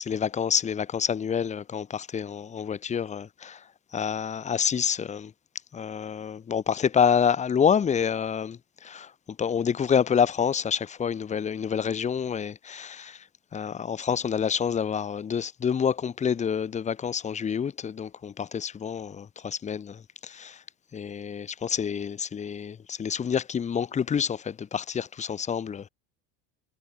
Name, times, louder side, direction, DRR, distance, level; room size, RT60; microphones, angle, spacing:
voice 1, 0.0-3.6 3.9-5.3 5.7-9.1 9.4-13.2 13.5-20.6 20.9-25.9, left 7 dB, 25° left, 4.2 m, -28 dB
supercardioid pair, 140°, 30 cm